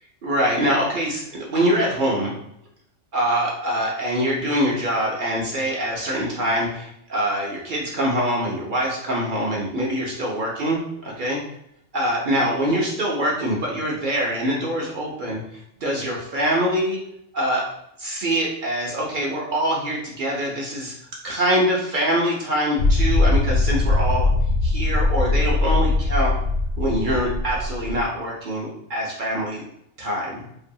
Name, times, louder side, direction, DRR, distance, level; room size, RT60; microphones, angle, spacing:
voice 1, 0.2-2.3 3.1-11.4 11.9-15.4 15.8-17.0 17.3-17.7 18.0-21.0 21.2-24.3 24.6-26.3 26.8-29.6 30.0-30.4, equal, 60° right, -3 dB, 0.5 m, -24 dB
sound 1, 22.8-28.0, left 2 dB, 75° left, 0.9 m, -21 dB
2.6 x 2.2 x 2.6 m, 0.78 s
omnidirectional pair, 1.4 m